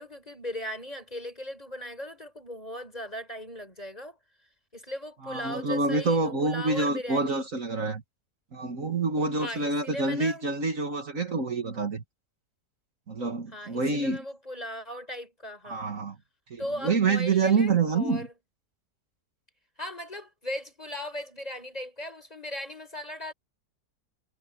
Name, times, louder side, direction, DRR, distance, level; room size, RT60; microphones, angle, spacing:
voice 1, 0.0-4.2 4.7-7.5 9.4-10.5 13.5-15.9 16.6-18.3 19.8-23.3, left 1 dB, 20° left, 5.1 m, -38 dB
voice 2, 5.2-8.0 8.5-12.0 13.1-14.2 15.6-16.2 16.5-18.3, right 3 dB, 55° right, 2.1 m, -27 dB
omnidirectional pair, 1.8 m